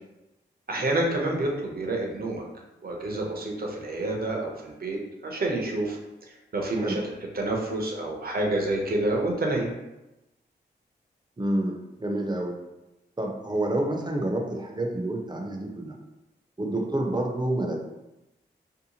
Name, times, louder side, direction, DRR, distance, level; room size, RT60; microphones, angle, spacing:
voice 1, 0.7-2.4 2.8-6.0 6.3-7.0 7.3-9.7, right 2 dB, 55° right, 0 dB, 0.7 m, -28 dB
voice 2, 11.4-12.6 13.2-16.0 16.6-17.8, right 1 dB, 25° right, 1 dB, 0.6 m, -28 dB
2.7 x 2.1 x 2.8 m, 0.97 s
cardioid pair, 45°, 19 cm